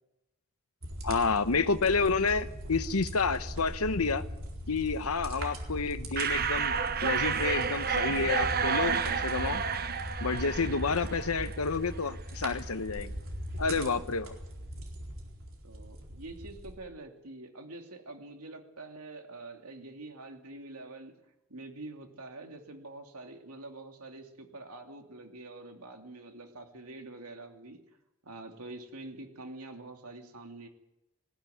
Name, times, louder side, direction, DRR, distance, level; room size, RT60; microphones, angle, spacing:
sound 1, 0.8-16.7, equal, 65° right, 4.2 m, -40 dB
voice 1, 1.0-4.2 4.7-6.7 7.0-9.6 10.2-13.1 13.6-14.3, left 4 dB, 80° left, 12 dB, 1.0 m, -29 dB
sound 2, 6.2-11.7, right 6 dB, 45° right, 1.0 m, -30 dB
voice 2, 10.3-10.6 15.6-21.1 21.5-27.8 28.2-30.7, right 2 dB, 90° right, 4 dB, 2.8 m, -46 dB
20.0 x 15.5 x 9.3 m, 0.93 s
head